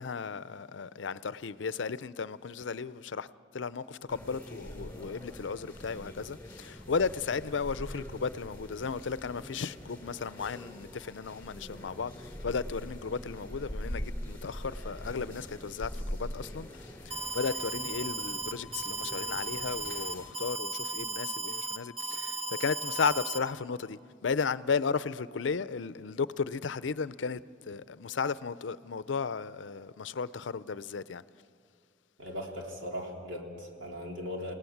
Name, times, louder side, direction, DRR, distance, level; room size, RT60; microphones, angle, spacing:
voice 1, 0.0-3.3 3.5-31.2, left 5 dB, 70° left, 0.5 m, -34 dB
sound 1, 4.1-20.3, equal, 10° left, 2.8 m, -43 dB
Alarm, 17.1-23.4, right 2 dB, 30° right, 1.2 m, -36 dB
voice 2, 32.2-34.5, equal, 85° right, 3.6 m, -38 dB
29.0 x 18.0 x 7.2 m
head